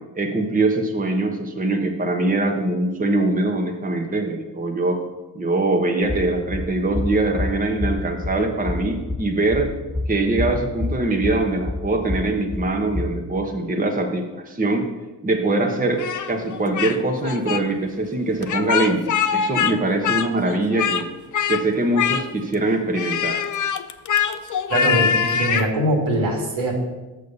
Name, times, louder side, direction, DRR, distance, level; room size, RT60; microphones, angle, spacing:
voice 1, 0.1-5.0 5.3-9.7 10.1-14.9 15.2-21.1 21.5-23.4, right 2 dB, 15° right, 3 dB, 1.2 m, -22 dB
sound 1, 6.0-13.0, left 2 dB, ahead, 1.6 m, -28 dB
Speech, 16.0-17.0 17.2-17.6 18.4-19.7 20.0-21.0 21.3-21.6 21.9-22.5 22.9-25.7, left 7 dB, 40° left, 0.7 m, -23 dB
voice 2, 24.7-26.7, right 1 dB, 70° right, 1 dB, 2.4 m, -22 dB
6.9 x 6.4 x 5.4 m, 1.1 s
hypercardioid pair, 50°, 49 cm